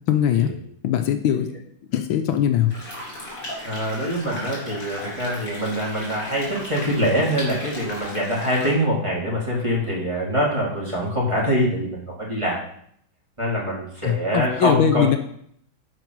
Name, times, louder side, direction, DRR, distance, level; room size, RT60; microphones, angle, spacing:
voice 1, 0.1-0.5 0.8-1.5 1.9-2.7 14.0-15.2, left 10 dB, 80° left, 7 dB, 1.5 m, -21 dB
sound 1, 2.7-8.7, left 1 dB, 65° left, 4.3 m, -36 dB
voice 2, 3.6-12.6 13.4-15.1, equal, 15° right, -5 dB, 2.8 m, -24 dB
11.0 x 5.1 x 4.7 m, 0.65 s
omnidirectional pair, 2.2 m